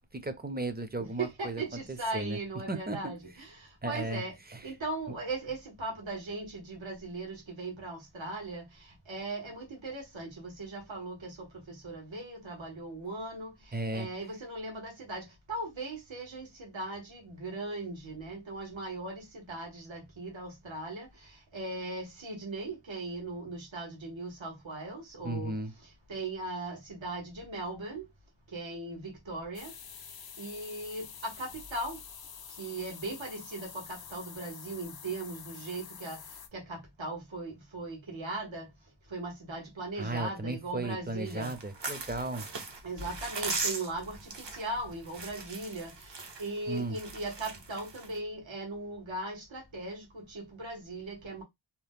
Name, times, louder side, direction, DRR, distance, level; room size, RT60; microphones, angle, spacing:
voice 1, 0.1-1.6 1.9-2.4 2.7-3.1 3.8-4.2 4.5-4.6 13.7-14.1 25.2-25.7 40.0-42.5 46.7-47.0, right 2 dB, 20° right, 0.5 m, -35 dB
voice 2, 1.0-4.3 4.6-8.6 9.1-13.5 13.9-21.1 21.5-25.5 26.1-28.1 28.5-29.7 30.4-32.0 32.6-36.2 36.5-38.7 39.1-41.5 42.8-45.9 46.4-51.4, right 2 dB, 85° right, 1.0 m, -38 dB
sound 1, 29.5-36.5, left 7 dB, 55° left, 0.5 m, -47 dB
sound 2, 41.3-48.2, right 3 dB, 70° right, 0.9 m, -39 dB
2.8 x 2.1 x 3.4 m
wide cardioid pair, 55°, 45 cm